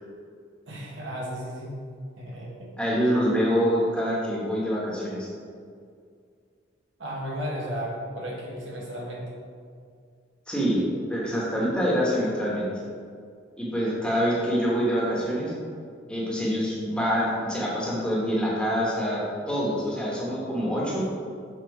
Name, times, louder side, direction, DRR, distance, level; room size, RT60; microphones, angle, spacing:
voice 1, 0.7-1.7 2.2-2.7 7.0-9.2, equal, 80° right, -4 dB, 1.6 m, -34 dB
voice 2, 2.8-5.3 10.5-10.8 11.1-12.7 13.6-15.5 16.1-21.1, equal, 5° left, -6 dB, 1.2 m, -25 dB
6.3 x 3.9 x 4.8 m, 2.2 s
head